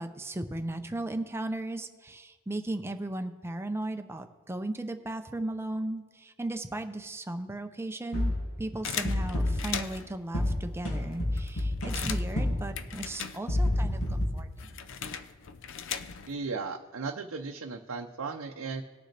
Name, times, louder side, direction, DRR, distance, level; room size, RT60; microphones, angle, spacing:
voice 1, 0.0-8.3 8.6-14.7, right 1 dB, 10° right, 8 dB, 0.5 m, -36 dB
sound 1, 8.1-8.5 9.0-9.8 10.3-12.8 13.5-14.3, left 1 dB, 85° left, 2.2 m, -29 dB
sound 2, 8.8-10.2 10.8-10.9 11.1-13.8 14.1-16.4, left 8 dB, 60° left, 0.5 m, -38 dB
voice 2, 16.3-18.8, right 4 dB, 80° right, 2 dB, 0.6 m, -36 dB
19.5 x 6.4 x 3.3 m, 1.4 s
head